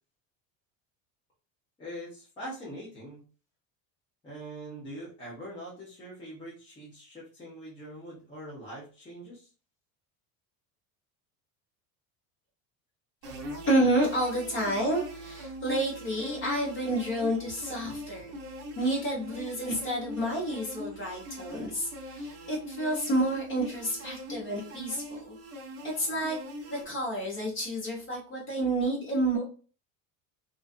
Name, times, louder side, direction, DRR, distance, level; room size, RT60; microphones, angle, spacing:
voice 1, 1.8-3.2 4.2-9.5, equal, 15° left, -8 dB, 0.7 m, -43 dB
sound 1, 13.2-26.8, equal, 40° right, 0.7 m, -42 dB
voice 2, 13.6-18.4 18.7-25.3 26.0-26.4 26.7-29.4, right 1 dB, 35° left, -3 dB, 1.2 m, -29 dB
2.5 x 2.4 x 2.4 m, 0.37 s
cardioid pair, 170°, 37 cm